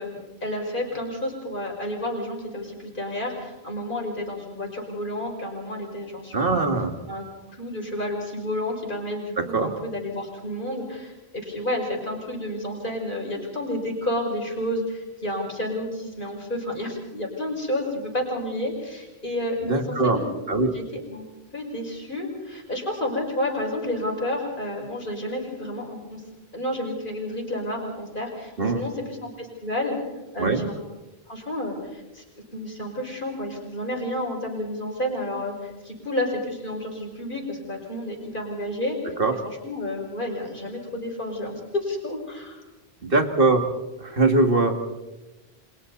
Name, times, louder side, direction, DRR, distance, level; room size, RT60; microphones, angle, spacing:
voice 1, 0.0-6.7 7.1-7.2 7.5-20.3 20.7-20.8 21.1-21.2 21.5-26.2 26.5-28.9 29.2-30.0 30.3-30.7 31.3-32.2 32.5-39.0 39.6-42.6, left 1 dB, 55° left, 0 dB, 5.8 m, -30 dB
voice 2, 6.3-6.9 9.4-9.7 19.7-20.2 20.5-20.7 28.6-28.8 30.4-30.6 39.2-39.4 43.0-43.7 44.0-44.8, right 3 dB, 60° right, 5 dB, 2.5 m, -21 dB
29.5 x 26.5 x 4.2 m, 1.1 s
omnidirectional pair, 1.1 m